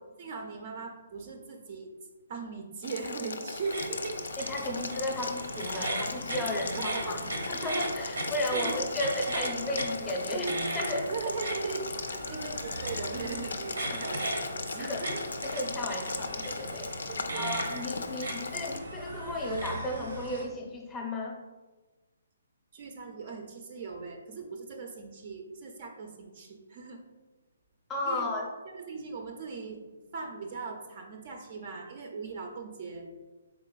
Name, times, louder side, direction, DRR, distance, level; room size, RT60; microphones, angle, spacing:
voice 1, 0.2-1.9 2.3-4.3 6.5-7.2 8.5-9.0 11.1-15.2 15.9-16.1 17.1-17.6 22.7-27.0 28.1-28.3 28.7-33.1, right 4 dB, 45° right, 3 dB, 0.5 m, -39 dB
Boiling, 2.8-18.8, left 3 dB, 80° left, 0.4 m, -38 dB
sound 1, 3.6-20.4, right 1 dB, 90° right, 0.9 m, -37 dB
voice 2, 4.5-11.1 13.8-14.0 14.8-15.0 15.4-16.9 17.3-21.4 27.9-28.5, left 1 dB, 15° left, 0 dB, 0.6 m, -34 dB
3.9 x 3.8 x 2.3 m, 1.2 s
hypercardioid pair, 150°, 0 cm